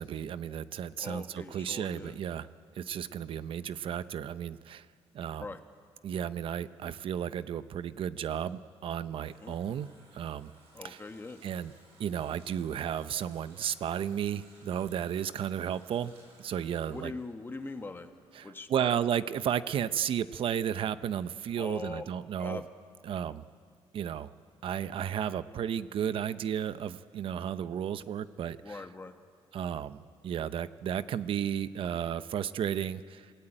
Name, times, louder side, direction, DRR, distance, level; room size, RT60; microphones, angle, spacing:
voice 1, 0.0-2.5 2.7-4.9 5.1-5.5 6.0-9.9 10.1-10.5 10.8-11.0 11.4-11.7 12.0-16.1 16.4-17.1 18.3-22.6 23.0-23.4 23.9-24.3 24.6-28.8 29.5-33.3, right 9 dB, 65° right, 14 dB, 0.8 m, -33 dB
voice 2, 1.0-2.2 5.4-5.6 9.4-9.6 10.7-11.4 16.9-18.1 18.4-19.0 21.6-22.0 22.4-22.7 28.6-29.1, left 3 dB, 20° left, 6 dB, 1.8 m, -41 dB
Water tap faucet, 9.2-18.3 18.6-18.7, right 2 dB, 90° right, 7.8 m, -61 dB
27.5 x 18.0 x 8.9 m, 2.1 s
cardioid pair, 110°, 10 cm